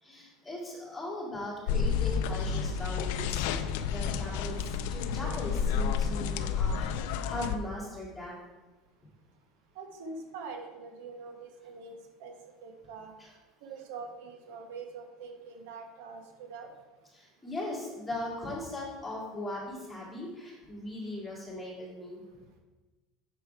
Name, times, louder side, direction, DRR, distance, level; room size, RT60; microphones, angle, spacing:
voice 1, 0.0-8.3 13.2-13.3 17.1-22.4, left 1 dB, 5° left, -6 dB, 2.3 m, -39 dB
sound 1, 1.7-7.6, left 6 dB, 75° left, 0.4 m, -30 dB
voice 2, 9.7-12.3 12.6-13.1 13.6-16.7, right 4 dB, 85° right, 3 dB, 1.2 m, -44 dB
6.8 x 4.9 x 4.5 m, 1.2 s
cardioid pair, 160°, 0 cm